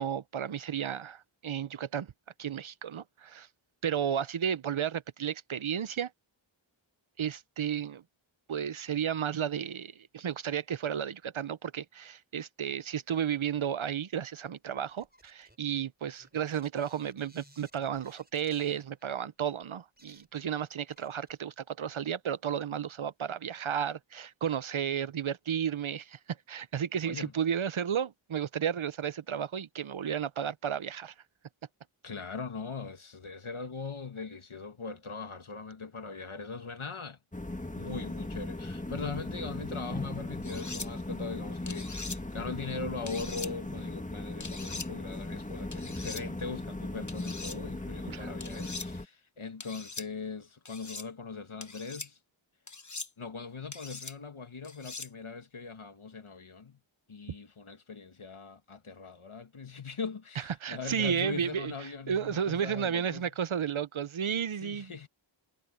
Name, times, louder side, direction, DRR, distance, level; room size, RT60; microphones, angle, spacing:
voice 1, 0.0-2.1 2.4-3.5 3.8-6.1 7.2-8.0 8.5-26.2 26.5-31.1 48.1-48.3 60.6-61.7 62.1-64.9, right 8 dB, 80° right, 0.7 m, -33 dB
sound 1, 15.0-19.1 19.6-19.7 20.0-21.6 21.9-22.0, right 1 dB, 20° right, 5.5 m, -61 dB
voice 2, 32.0-37.2 37.7-52.2 53.2-56.8 57.1-63.3 64.6-65.1, left 4 dB, 90° left, 1.8 m, -40 dB
sound 2, 37.3-49.0, left 2 dB, 15° left, 1.4 m, -38 dB
sound 3, 40.4-40.9 41.7-42.2 43.1-43.5 44.4-44.9 45.7-46.2 47.1-47.6 48.4-48.9 49.6-50.1 50.7-51.1 51.6-52.1 52.7-53.1 53.7-54.1 54.6-55.1, left 4 dB, 35° left, 1.1 m, -41 dB
wide cardioid pair, 50°, 48 cm